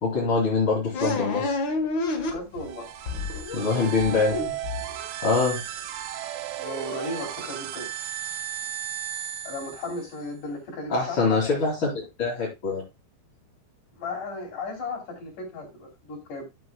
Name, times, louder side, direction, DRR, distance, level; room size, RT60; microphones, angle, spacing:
voice 1, 0.0-1.5 3.5-4.4 5.2-5.6 10.9-11.9 12.2-12.8, left 4 dB, 35° left, -5 dB, 3.2 m, -24 dB
sound 1, 0.9-2.7 3.1-5.3, left 3 dB, 75° left, 1.1 m, -29 dB
voice 2, 2.3-2.9 6.6-7.9 9.4-11.4 13.9-16.4, left 3 dB, 50° left, 1 dB, 4.6 m, -35 dB
sound 2, 2.6-10.2, right 11 dB, 75° right, 2.6 m, -35 dB
13.0 x 7.6 x 2.3 m, 0.23 s
omnidirectional pair, 4.7 m